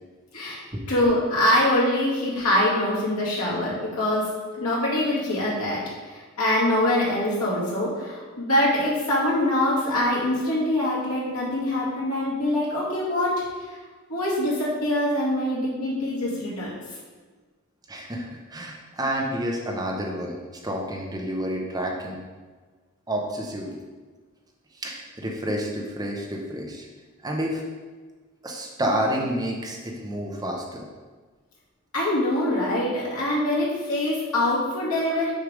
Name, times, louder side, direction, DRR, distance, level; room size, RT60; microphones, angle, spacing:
voice 1, 0.9-4.3 4.5-5.8 6.1-13.3 14.1-16.7 31.9-35.3, left 1 dB, 90° left, -5 dB, 2.0 m, -24 dB
voice 2, 17.9-20.4 20.6-22.2 23.1-23.8 24.8-26.9 27.2-27.6 28.4-30.8, equal, 15° right, 0 dB, 0.7 m, -29 dB
6.3 x 3.3 x 5.0 m, 1.4 s
head